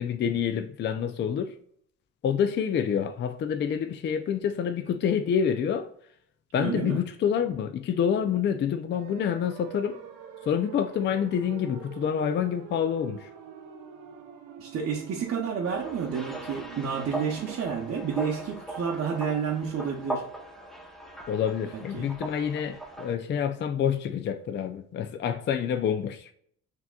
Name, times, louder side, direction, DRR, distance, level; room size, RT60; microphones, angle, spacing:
voice 1, 0.0-1.5 2.2-5.9 6.5-10.0 10.5-13.3 21.3-26.3, left 8 dB, 35° left, 0.4 m, -27 dB
voice 2, 6.6-7.0 14.6-20.2 21.7-22.1, right 6 dB, 50° right, 0.8 m, -30 dB
sound 1, 8.9-17.8, right 9 dB, 80° right, 0.6 m, -45 dB
sound 2, 15.6-23.1, right 2 dB, ahead, 0.7 m, -39 dB
5.8 x 2.9 x 2.2 m
cardioid pair, 90°, 31 cm